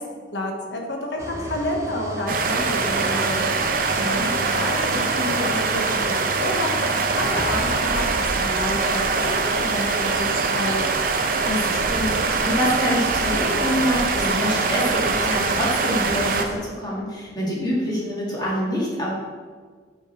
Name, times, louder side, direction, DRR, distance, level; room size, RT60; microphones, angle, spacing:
voice 1, 0.0-3.5 4.1-4.2 4.5-11.0, left 1 dB, 75° left, 1 dB, 1.1 m, -29 dB
sound 1, 1.2-16.6, right 1 dB, 15° right, 0.9 m, -35 dB
sound 2, 2.3-16.4, right 4 dB, 50° right, 0.6 m, -23 dB
voice 2, 4.0-4.3 11.4-19.1, equal, 25° left, -6 dB, 2.0 m, -26 dB
5.9 x 5.2 x 4.6 m, 1.5 s
head